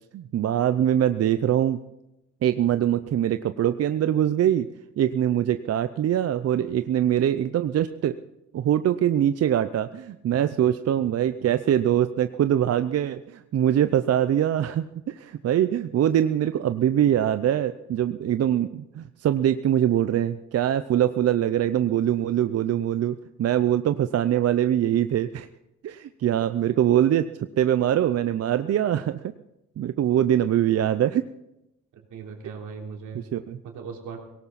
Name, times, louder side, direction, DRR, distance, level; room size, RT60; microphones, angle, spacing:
voice 1, 0.1-1.8 2.4-4.7 5.0-8.2 8.5-25.5 25.8-27.3 27.6-29.3 29.8-31.2 33.1-33.6, right 11 dB, 55° right, 11 dB, 0.6 m, -23 dB
voice 2, 32.1-33.3 33.6-34.2, right 5 dB, 80° right, 1 dB, 3.5 m, -38 dB
18.0 x 17.5 x 4.2 m, 0.91 s
cardioid pair, 90°, 30 cm